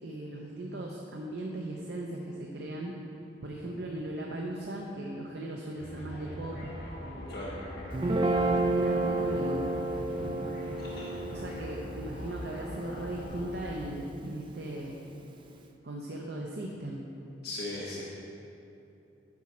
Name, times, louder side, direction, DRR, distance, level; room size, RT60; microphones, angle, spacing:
voice 1, 0.0-2.9 3.4-6.7 8.0-10.5 11.3-15.0 15.8-17.1, right 1 dB, 60° right, -1 dB, 0.6 m, -38 dB
sound 1, 5.8-14.0, equal, 80° left, 1.8 m, -42 dB
Guitar, 7.9-14.3, right 2 dB, 25° right, 0.3 m, -31 dB
voice 2, 10.8-11.2 17.4-18.0, left 2 dB, 55° left, -7 dB, 1.0 m, -38 dB
9.6 x 6.2 x 4.3 m, 2.9 s
head